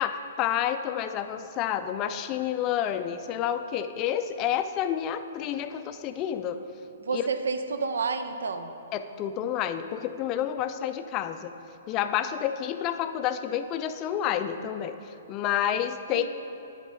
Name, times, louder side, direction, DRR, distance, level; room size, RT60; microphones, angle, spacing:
voice 1, 0.0-6.6 7.1-7.2 8.9-11.5 11.9-16.3, left 10 dB, 30° left, 9 dB, 0.4 m, -29 dB
voice 2, 7.0-8.7 16.1-16.3, right 4 dB, 70° right, 9 dB, 0.5 m, -30 dB
9.0 x 3.8 x 6.3 m, 2.8 s
figure-of-eight pair, 120°, 0 cm